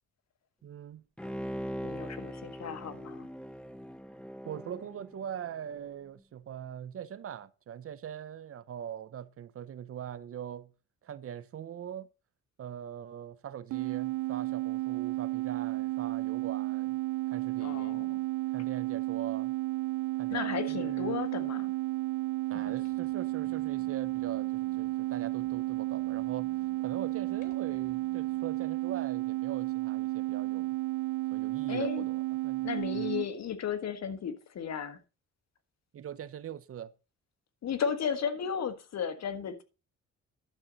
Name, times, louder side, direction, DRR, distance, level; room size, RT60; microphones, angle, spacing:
voice 1, 0.6-1.0 4.5-10.7 11.0-12.1 12.6-17.0 17.3-18.0 18.5-19.5 20.2-21.2 22.5-26.5 26.8-30.7 31.3-33.1 35.9-36.9, right 9 dB, 50° right, 0.7 m, -42 dB
Bowed string instrument, 1.2-5.8 6.2-6.3, equal, 5° left, 0.8 m, -41 dB
voice 2, 1.8-3.3 17.6-18.2 20.3-21.7 22.5-22.7 31.7-32.1 32.6-35.0 37.6-39.6, left 7 dB, 60° left, 1.5 m, -34 dB
sound 1, 13.7-33.3, right 20 dB, 80° right, 0.4 m, -32 dB
sound 2, 22.5-28.5, left 5 dB, 80° left, 2.4 m, -59 dB
11.5 x 7.4 x 3.9 m
cardioid pair, 90°, 30 cm